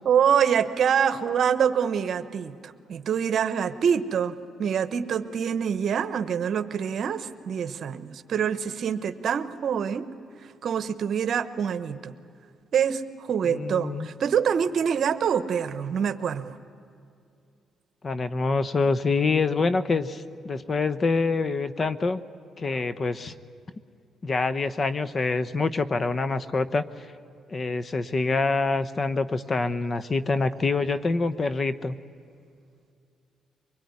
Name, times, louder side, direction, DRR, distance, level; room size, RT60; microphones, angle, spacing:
voice 1, 0.0-10.1 10.6-12.1 12.7-16.6, right 7 dB, 60° right, 12 dB, 1.1 m, -25 dB
voice 2, 13.4-14.1 18.0-22.2 22.6-23.3 24.2-27.1 27.5-31.9, left 3 dB, 35° left, 13 dB, 0.9 m, -26 dB
24.5 x 21.0 x 9.7 m, 2.5 s
cardioid pair, 90°, 0 cm